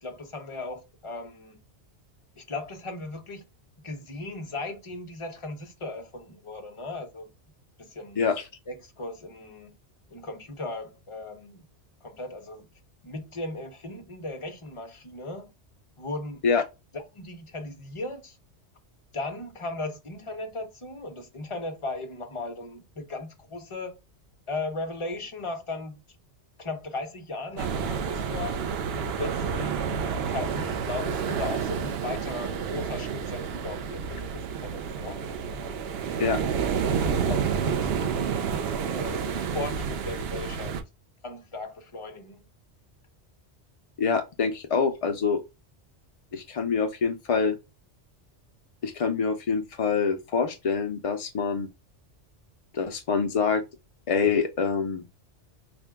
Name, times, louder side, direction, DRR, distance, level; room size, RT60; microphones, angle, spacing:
voice 1, 0.0-1.6 2.4-3.4 3.8-7.3 7.8-8.2 8.7-9.7 10.1-11.6 12.0-12.7 13.0-15.5 16.0-16.4 16.9-18.4 19.1-24.0 24.5-26.0 26.6-28.6 29.0-30.0 30.3-35.2 37.0-40.8 41.2-42.4, left 2 dB, 35° left, 0.7 m, -37 dB
voice 2, 8.2-8.5 16.4-16.6 36.2-36.4 44.0-45.4 46.3-47.6 48.8-51.7 52.7-53.6 54.1-55.0, left 5 dB, 65° left, 0.3 m, -25 dB
sound 1, 27.6-40.8, right 6 dB, 65° right, 0.8 m, -29 dB
4.3 x 2.2 x 3.4 m
omnidirectional pair, 1.2 m